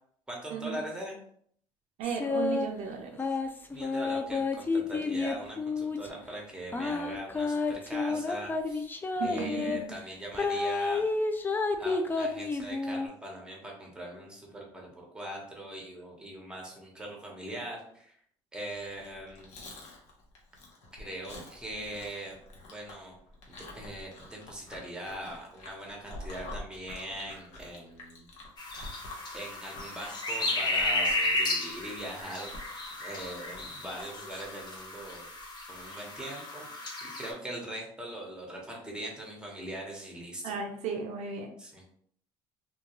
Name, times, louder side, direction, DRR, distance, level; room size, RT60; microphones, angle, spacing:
voice 1, 0.3-1.2 3.7-8.9 9.2-11.0 11.8-18.2 18.5-19.5 21.0-22.4 22.6-23.1 23.5-28.3 29.3-32.5 33.0-35.3 35.7-40.6 41.6-41.8, right 1 dB, 5° right, -1 dB, 1.0 m, -41 dB
sound 1, 2.0-2.7 3.2-6.1 6.7-9.8 10.3-13.1, left 3 dB, 15° left, 0.3 m, -30 dB
voice 2, 2.0-3.2 9.1-9.9 40.4-41.5, right 6 dB, 65° right, 2 dB, 0.4 m, -35 dB
Chewing mastication, 18.9-33.7, left 2 dB, 65° left, 0.9 m, -47 dB
sound 2, 28.6-37.3, left 2 dB, 35° left, 0.7 m, -33 dB
2.3 x 2.2 x 2.9 m, 0.63 s
supercardioid pair, 80°, 12 cm